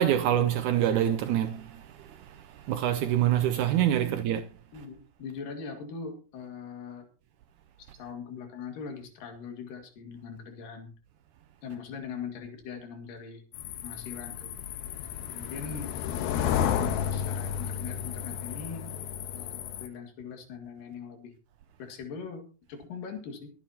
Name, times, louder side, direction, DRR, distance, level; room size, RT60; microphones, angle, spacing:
voice 1, 0.0-4.4 7.9-8.0, right 11 dB, 80° right, 1.8 m, -26 dB
voice 2, 4.7-7.1 8.0-10.9 11.6-13.4 13.8-14.5 15.3-18.9 19.3-21.3 21.8-22.4 22.7-23.5, left 5 dB, 65° left, 3.6 m, -41 dB
sound 1, 13.5-19.9, left 9 dB, 90° left, 2.8 m, -32 dB
23.0 x 9.0 x 2.8 m
omnidirectional pair, 4.3 m